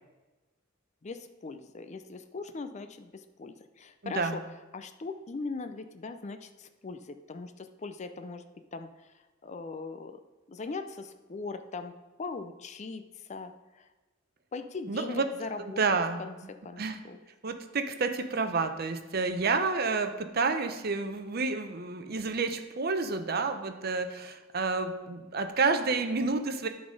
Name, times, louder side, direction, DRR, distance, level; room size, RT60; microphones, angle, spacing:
voice 1, 1.0-4.4 4.7-8.4 8.7-9.1 9.4-10.2 10.5-11.9 12.2-13.9 14.5-17.2, left 4 dB, 35° left, 9 dB, 0.5 m, -40 dB
voice 2, 4.0-4.4 14.9-15.3 15.6-16.2 16.8-17.0 17.4-26.7, right 4 dB, 50° right, 8 dB, 0.7 m, -29 dB
12.0 x 4.0 x 5.2 m, 1.2 s
head